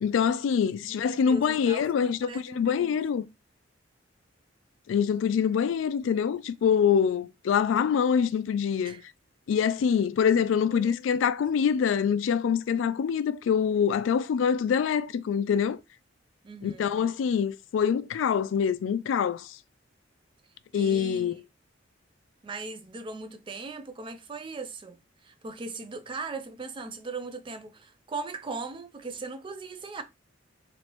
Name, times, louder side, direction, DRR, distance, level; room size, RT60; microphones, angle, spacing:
voice 1, 0.0-3.3 4.9-9.0 9.5-15.8 16.6-19.6 20.7-21.4, left 7 dB, 75° left, 0.3 m, -25 dB
voice 2, 0.8-3.0 8.8-9.0 10.7-11.3 16.4-17.0 20.7-21.3 22.4-30.0, right 3 dB, 25° right, 0.4 m, -39 dB
3.1 x 2.5 x 3.0 m
head